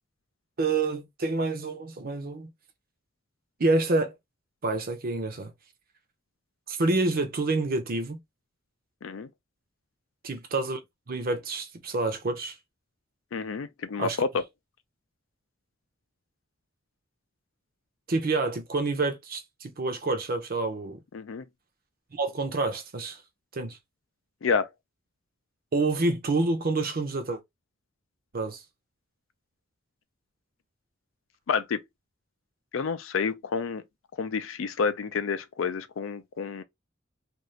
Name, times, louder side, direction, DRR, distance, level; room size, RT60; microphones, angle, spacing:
voice 1, 0.6-2.5 3.6-4.1 4.6-5.5 6.7-8.2 10.2-10.8 11.1-12.6 14.0-14.2 18.1-21.0 22.1-23.2 23.5-23.8 25.7-27.4 28.3-28.6, right 3 dB, 45° right, 0.7 m, -28 dB
voice 2, 13.3-14.4 21.1-21.5 24.4-24.7 31.5-31.8 32.7-33.8 34.2-36.6, left 5 dB, 70° left, 0.4 m, -29 dB
2.6 x 2.4 x 3.1 m
head